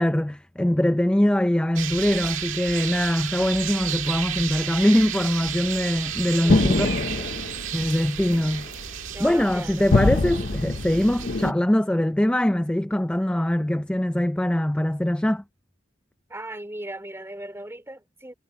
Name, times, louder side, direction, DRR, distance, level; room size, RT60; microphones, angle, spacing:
voice 1, 0.0-6.9 7.7-8.7 9.2-15.4, left 1 dB, 5° left, 0.3 m, -22 dB
sound 1, 1.8-11.5, right 9 dB, 80° right, 1.8 m, -32 dB
sound 2, 5.4-11.5, left 2 dB, 50° left, 0.7 m, -25 dB
voice 2, 6.4-7.3 9.1-9.9 16.3-18.3, right 1 dB, 15° right, 3.4 m, -38 dB
head